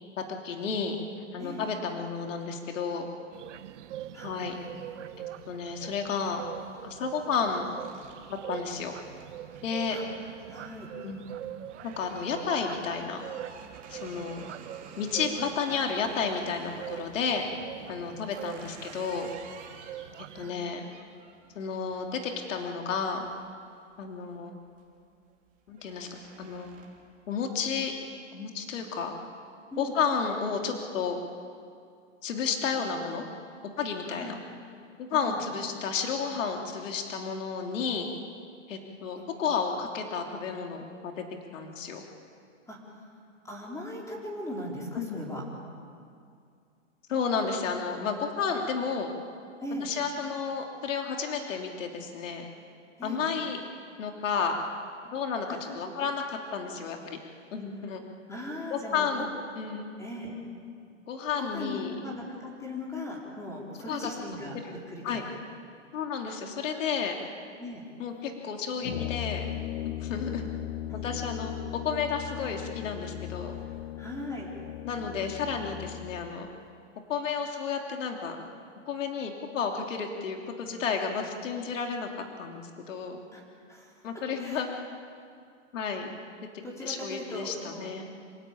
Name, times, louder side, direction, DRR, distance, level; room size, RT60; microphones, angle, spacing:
voice 1, 0.3-1.0 1.3-3.1 4.2-4.6 5.2-6.4 6.8-7.7 8.3-8.9 9.6-10.0 11.0-11.2 11.8-13.3 13.9-14.4 15.0-17.5 17.9-19.3 20.2-20.8 21.5-23.3 24.0-24.5 25.7-26.1 26.4-26.7 27.3-27.9 28.3-29.1 29.8-31.2 32.2-33.2 33.6-34.4 35.0-38.1 38.7-41.2 41.5-42.0 44.9-45.2 47.1-49.1 49.8-52.5 53.0-53.6 54.0-54.6 55.1-57.2 57.5-58.0 58.7-59.3 59.6-59.8 61.1-61.9 63.9-64.1 64.6-64.7 65.0-65.2 65.9-67.1 68.0-69.5 69.8-70.5 70.9-71.5 71.8-73.6 74.8-76.5 77.1-78.4 78.9-82.1 82.4-83.2 84.0-84.7 85.7-86.1 86.8-88.0, left 6 dB, 75° left, 2 dB, 3.2 m, -32 dB
sound 1, 3.3-20.5, right 12 dB, 70° right, 1.0 m, -43 dB
voice 2, 4.1-4.4 9.9-10.0 10.5-10.9 20.3-20.7 29.7-29.9 34.1-34.3 35.3-35.4 42.7-42.8 43.4-45.4 49.6-49.9 53.0-53.2 58.3-59.1 60.0-60.3 61.4-64.5 64.9-65.2 67.6-67.8 74.0-74.5 83.3-83.4 83.7-83.9 84.4-84.6 86.6-87.9, left 1 dB, 10° left, -2 dB, 4.3 m, -38 dB
sound 2, 7.8-17.2 17.8-24.2 24.6-25.0 25.3-27.2, right 6 dB, 20° right, 3.2 m, -53 dB
Brass instrument, 68.8-76.3, left 14 dB, 55° left, 0.7 m, -37 dB
27.5 x 17.5 x 8.8 m, 2.3 s
hypercardioid pair, 155°, 38 cm